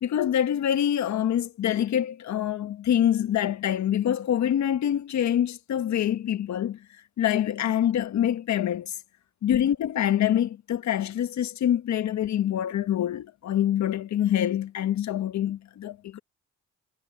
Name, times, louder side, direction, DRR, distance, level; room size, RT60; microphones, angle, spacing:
voice 1, 0.0-6.8 7.2-8.9 9.4-16.2, left 10 dB, 65° left, 1.4 m, -25 dB
cardioid pair, 90°, 30 cm